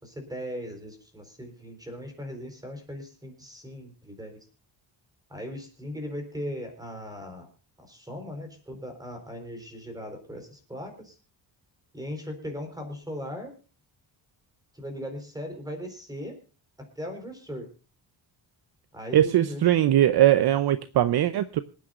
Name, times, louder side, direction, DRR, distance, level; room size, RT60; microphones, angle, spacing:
voice 1, 0.0-4.5 5.3-7.5 7.8-11.2 11.9-13.5 14.7-16.4 16.8-17.7 18.9-20.0, equal, 10° right, 5 dB, 4.2 m, -38 dB
voice 2, 19.1-21.6, right 12 dB, 55° right, 13 dB, 0.7 m, -21 dB
26.5 x 9.3 x 2.5 m, 0.35 s
wide cardioid pair, 170°, 46 cm